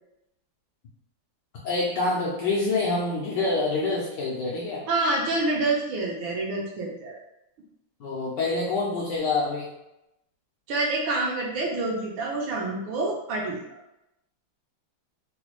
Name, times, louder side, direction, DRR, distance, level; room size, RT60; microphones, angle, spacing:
voice 1, 1.6-4.8 8.0-9.7, left 3 dB, 70° left, -5 dB, 1.1 m, -26 dB
voice 2, 4.9-7.2 10.7-13.6, right 2 dB, 70° right, -2 dB, 1.4 m, -27 dB
4.0 x 2.2 x 3.0 m, 0.89 s
omnidirectional pair, 2.4 m